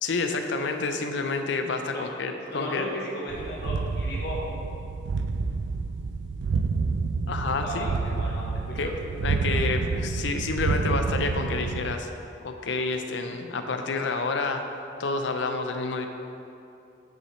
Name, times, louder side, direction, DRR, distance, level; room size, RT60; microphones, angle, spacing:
voice 1, 0.0-2.9 7.3-7.9 8.8-8.9 9.2-12.1 12.4-14.6 15.0-16.1, left 3 dB, 80° left, 6 dB, 0.5 m, -29 dB
voice 2, 2.5-4.5 7.6-8.9, equal, 60° left, -4 dB, 1.1 m, -35 dB
sound 1, 3.3-12.0, right 4 dB, 75° right, 0.3 m, -29 dB
9.0 x 5.8 x 3.2 m, 2.7 s
head